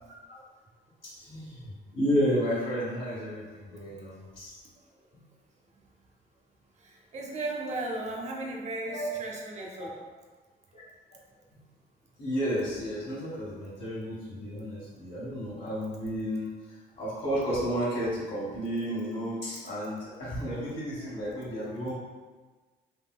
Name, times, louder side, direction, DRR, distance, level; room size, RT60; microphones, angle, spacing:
voice 1, 1.0-4.6 8.9-9.1 10.7-10.8 12.2-21.9, equal, 60° left, -10 dB, 1.2 m, -32 dB
voice 2, 7.1-9.9, right 2 dB, 35° right, -1 dB, 0.6 m, -35 dB
3.6 x 2.7 x 2.2 m, 1.4 s
cardioid pair, 90°, 20 cm